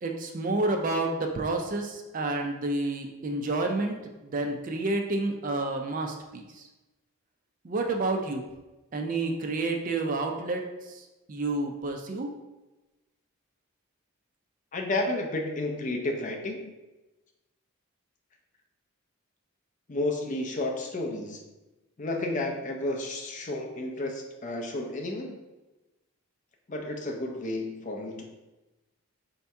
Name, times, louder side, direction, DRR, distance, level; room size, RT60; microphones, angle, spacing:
voice 1, 0.0-6.7 7.6-8.5 8.9-12.3, right 2 dB, 35° right, 3 dB, 0.4 m, -30 dB
voice 2, 14.7-16.7 19.9-21.4 22.0-25.4 26.7-28.4, left 2 dB, 35° left, 2 dB, 0.5 m, -32 dB
4.3 x 2.8 x 3.4 m, 1.1 s
head